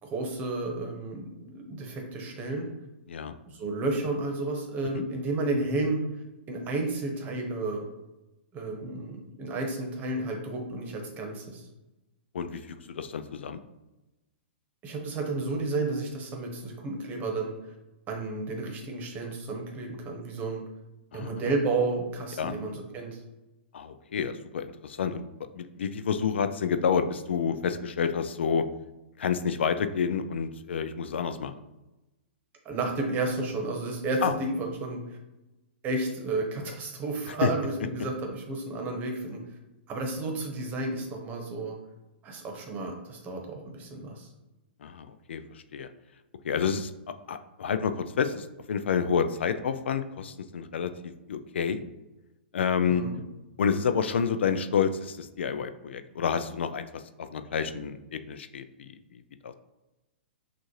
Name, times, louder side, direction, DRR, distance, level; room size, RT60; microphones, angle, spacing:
voice 1, 0.0-2.7 3.4-6.0 6.5-7.9 8.5-11.7 14.8-17.6 18.1-20.6 21.1-23.2 32.6-35.2 35.8-39.4 39.9-41.7 42.2-44.3 52.9-53.2, right 2 dB, 25° right, 2 dB, 1.0 m, -32 dB
voice 2, 12.3-13.6 21.1-21.3 22.4-22.5 23.7-25.2 25.5-28.7 29.2-31.6 34.2-34.3 37.3-37.5 44.8-45.9 46.4-46.9 47.3-50.9 51.3-51.8 52.5-53.0 53.6-59.0 59.4-59.5, left 7 dB, 75° left, 9 dB, 0.4 m, -29 dB
6.1 x 2.5 x 3.1 m, 1.0 s
hypercardioid pair, 125°, 6 cm